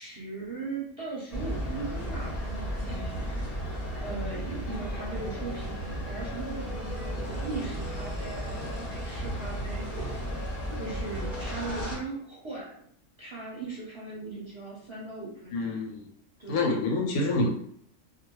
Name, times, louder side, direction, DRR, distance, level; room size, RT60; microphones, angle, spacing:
voice 1, 0.0-3.7 4.0-10.2 10.7-12.9 13.2-15.8 16.4-16.7, right 3 dB, 25° right, -7 dB, 0.8 m, -39 dB
sound 1, 1.3-12.0, equal, 40° left, 0.6 m, -34 dB
voice 2, 15.5-16.1 16.5-17.5, left 2 dB, 85° left, 2 dB, 1.1 m, -27 dB
2.4 x 2.1 x 3.0 m, 0.64 s
omnidirectional pair, 1.5 m